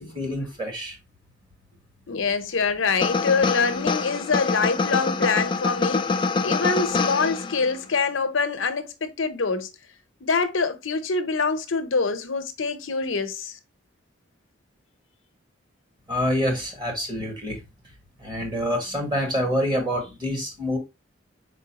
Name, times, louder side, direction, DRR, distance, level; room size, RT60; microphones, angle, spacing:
voice 1, 0.1-1.0 16.1-17.6 18.2-20.8, equal, 20° right, 1.5 m, -26 dB
voice 2, 2.1-9.7 10.2-13.6, left 4 dB, 75° left, 0.7 m, -25 dB
sound 1, 3.0-7.8, left 4 dB, 25° left, 0.3 m, -25 dB
4.4 x 3.8 x 2.8 m
head